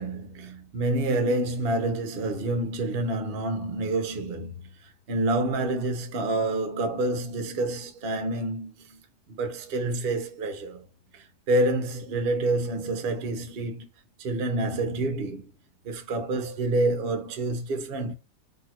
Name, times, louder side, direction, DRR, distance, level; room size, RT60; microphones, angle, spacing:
voice 1, 0.0-4.7 5.1-9.0 9.3-10.9 11.1-13.9 14.2-15.5 15.8-18.1, right 2 dB, 45° right, 0.8 m, -28 dB
4.3 x 2.8 x 4.3 m
omnidirectional pair, 1.8 m